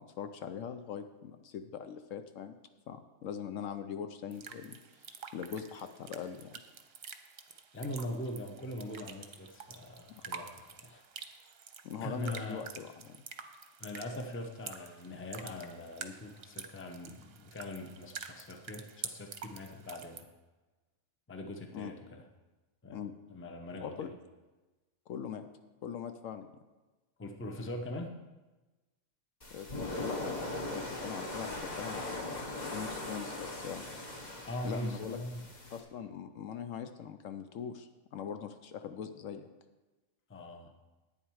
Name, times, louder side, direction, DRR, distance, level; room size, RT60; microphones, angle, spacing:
voice 1, 0.0-2.6 2.9-6.5 10.1-10.2 11.8-13.2 21.7-21.9 22.9-23.1 23.8-24.1 25.1-25.5 25.8-26.5 29.5-33.8 34.6-35.2 35.7-39.5, left 8 dB, 70° left, 8 dB, 1.0 m, -42 dB
sound 1, 4.3-20.2, right 6 dB, 50° right, 0.9 m, -48 dB
voice 2, 7.5-11.0 12.0-12.6 13.8-20.3 21.3-22.2 22.8-23.0 23.3-24.1 27.2-28.1 34.4-35.5 40.3-40.7, left 1 dB, 10° left, 4 dB, 0.6 m, -41 dB
sound 2, 29.4-35.8, left 2 dB, 30° left, 1.4 m, -40 dB
11.0 x 9.1 x 4.7 m, 1.2 s
omnidirectional pair, 1.5 m